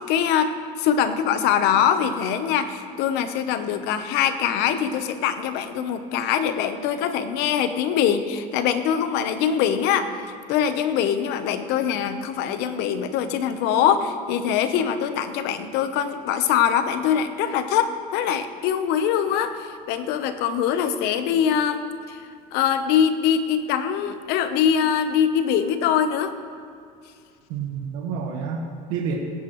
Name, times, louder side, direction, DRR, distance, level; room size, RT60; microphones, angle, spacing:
voice 1, 0.1-10.1 10.5-22.2 22.5-26.3, left 8 dB, 70° left, 10 dB, 1.0 m, -23 dB
voice 2, 27.5-29.1, right 6 dB, 80° right, 0 dB, 1.5 m, -29 dB
18.0 x 10.0 x 3.2 m, 2.4 s
supercardioid pair, 110°, 18 cm